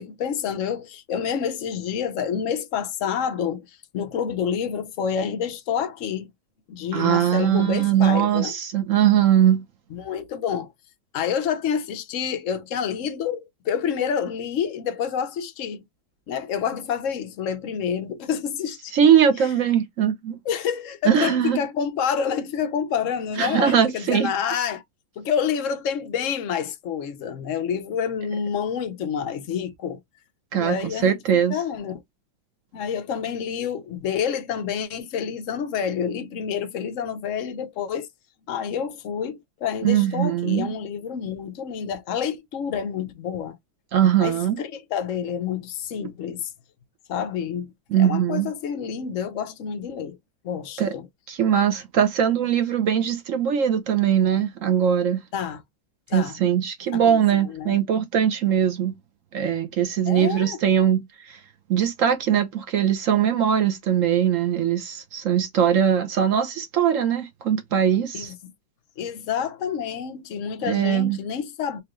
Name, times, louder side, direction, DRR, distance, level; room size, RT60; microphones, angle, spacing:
voice 1, 0.0-6.3 6.7-8.5 9.9-10.7 11.1-15.8 16.3-18.9 20.4-24.8 25.2-30.0 30.5-31.2 31.5-32.0 32.7-38.1 38.5-43.6 44.2-46.5 47.1-50.2 50.4-51.1 55.3-55.6 56.1-56.4 56.9-57.8 60.1-60.6 68.1-68.4 69.0-71.8, left 7 dB, 65° left, 0.7 m, -28 dB
voice 2, 6.9-9.6 18.9-20.4 21.0-21.6 23.4-24.3 30.5-31.6 39.8-40.7 43.9-44.6 47.9-48.5 50.8-50.9 51.3-55.2 56.1-58.9 59.3-61.0 61.3-61.4 61.7-68.3 70.6-71.2, right 9 dB, 60° right, 0.8 m, -21 dB
4.5 x 2.4 x 3.1 m
omnidirectional pair, 2.3 m